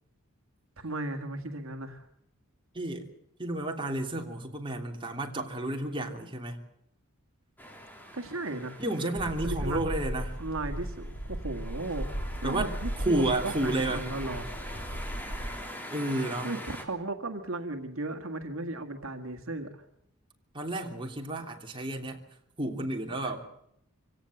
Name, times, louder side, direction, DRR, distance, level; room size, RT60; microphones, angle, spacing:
voice 1, 0.8-2.0 8.1-8.8 9.4-9.9 10.4-14.5 16.4-19.8 23.2-23.3, right 2 dB, 65° right, 5 dB, 1.9 m, -36 dB
voice 2, 2.7-3.1 3.4-6.6 8.8-10.3 12.4-12.7 13.0-14.0 15.9-16.5 20.5-22.2 22.6-23.4, right 1 dB, 25° right, 2 dB, 3.1 m, -31 dB
sound 1, 7.6-16.8, equal, 10° left, 3.3 m, -44 dB
sound 2, 9.2-15.6, equal, 65° left, 3.7 m, -36 dB
25.0 x 17.0 x 7.8 m, 0.76 s
head